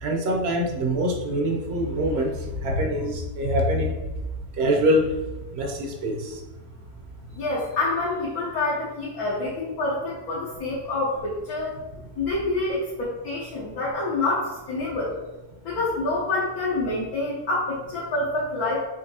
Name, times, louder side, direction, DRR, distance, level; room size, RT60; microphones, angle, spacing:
voice 1, 0.0-4.0 4.6-5.0 5.5-6.4, equal, 50° right, 0 dB, 1.0 m, -24 dB
voice 2, 7.3-11.7 12.2-15.1 15.6-18.8, left 2 dB, 70° left, -7 dB, 1.5 m, -27 dB
6.7 x 2.8 x 2.8 m, 1.1 s
omnidirectional pair, 1.7 m